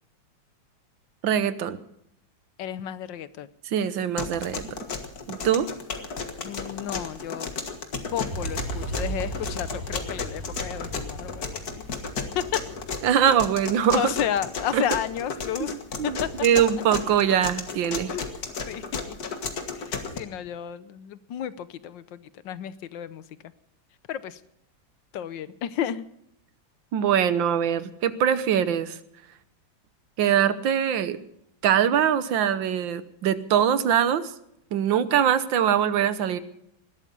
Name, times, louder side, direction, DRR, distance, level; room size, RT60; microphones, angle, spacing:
voice 1, 1.2-1.8 3.7-4.7 5.3-5.7 13.0-14.1 14.7-14.8 16.0-18.1 26.9-29.0 30.2-31.2 31.6-34.3 34.7-36.4, right 9 dB, 80° right, 14 dB, 1.7 m, -22 dB
voice 2, 2.6-3.5 6.4-7.7 8.1-11.8 12.3-12.6 13.9-15.8 16.0-16.3 18.1-18.2 18.7-19.2 19.7-23.5 24.1-24.4 25.1-26.1, left 10 dB, 75° left, 15 dB, 1.4 m, -32 dB
sound 1, 4.2-20.2, left 5 dB, 55° left, 2.1 m, -33 dB
sound 2, 8.3-16.2, right 2 dB, 45° right, 4.4 m, -38 dB
19.5 x 13.0 x 5.4 m, 0.76 s
omnidirectional pair, 2.1 m